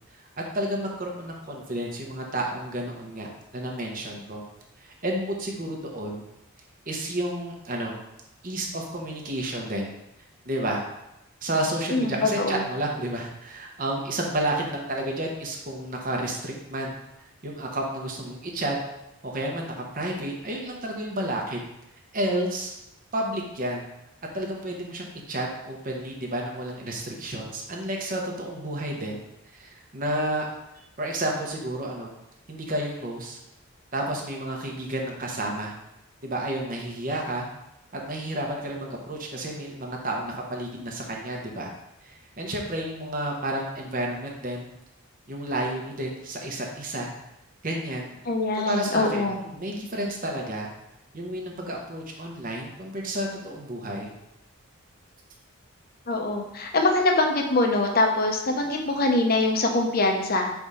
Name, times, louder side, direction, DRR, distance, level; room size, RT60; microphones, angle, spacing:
voice 1, 0.5-4.4 4.8-6.2 6.9-8.0 8.4-9.9 10.5-10.8 11.4-16.9 17.4-18.8 19.2-21.6 22.1-22.7 23.1-23.8 24.3-30.5 31.0-32.1 32.5-33.4 33.9-35.7 36.2-37.5 37.9-41.7 42.0-44.6 45.3-47.1 47.6-48.1 48.6-50.7 51.1-54.1, right 1 dB, 40° right, 0 dB, 0.9 m, -31 dB
voice 2, 11.9-12.6 48.3-49.4 56.1-60.5, left 2 dB, 45° left, 2 dB, 0.8 m, -23 dB
4.9 x 3.5 x 5.5 m, 0.88 s
head